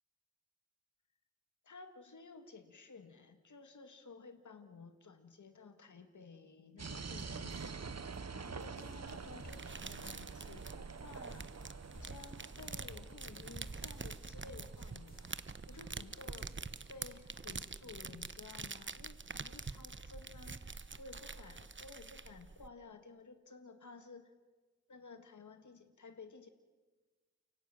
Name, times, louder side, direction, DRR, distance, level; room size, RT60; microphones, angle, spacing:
voice 1, 1.6-7.8 8.0-11.7 12.0-16.5 16.9-24.3 24.9-26.5, left 4 dB, 90° left, 7 dB, 1.8 m, -54 dB
sound 1, 6.8-17.5, right 5 dB, 60° right, 1.1 m, -48 dB
sound 2, 6.9-9.1 9.4-10.3 10.5-14.2 14.5-15.4 15.7-15.8 16.0-16.7, left 1 dB, 30° left, 4.5 m, -57 dB
sound 3, 9.1-22.7, right 4 dB, 40° right, 1.1 m, -46 dB
30.0 x 17.0 x 9.1 m, 1.3 s
cardioid pair, 45°, 29 cm